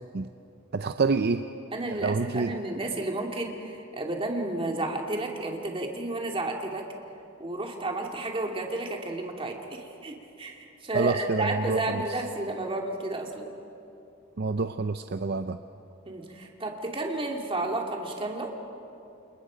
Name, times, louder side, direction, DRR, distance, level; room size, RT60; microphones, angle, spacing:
voice 1, 0.7-1.5 2.0-2.5 10.9-12.0 14.4-15.6, right 4 dB, 50° right, 9 dB, 0.6 m, -27 dB
voice 2, 1.7-6.9 7.4-13.5 16.1-18.6, right 2 dB, 25° right, 2 dB, 2.4 m, -32 dB
29.0 x 27.5 x 5.1 m, 2.7 s
head